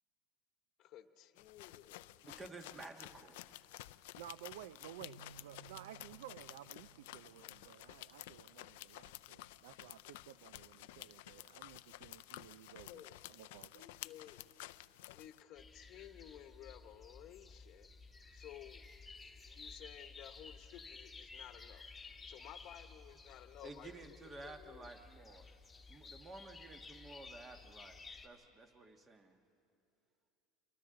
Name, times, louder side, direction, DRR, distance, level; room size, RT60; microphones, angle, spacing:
voice 1, 0.8-2.1 7.2-7.5 9.0-9.2 12.9-13.2 13.7-14.4 15.1-17.9 18.3-18.8 19.2-21.8 22.2-24.2 24.4-24.9, left 11 dB, 50° left, 9 dB, 1.0 m, -55 dB
sound 1, 1.4-15.4, left 17 dB, 85° left, 0.4 m, -53 dB
voice 2, 2.2-3.4 23.6-25.5 25.9-29.4, right 2 dB, 20° right, 6 dB, 1.4 m, -53 dB
voice 3, 4.2-13.9, right 12 dB, 90° right, 14 dB, 0.4 m, -54 dB
sound 2, 5.0-8.7, right 4 dB, 40° right, 2.3 m, -61 dB
sound 3, 15.5-28.3, left 4 dB, 10° left, 1.4 m, -55 dB
29.0 x 23.0 x 3.8 m, 2.7 s
supercardioid pair, 125°, 0 cm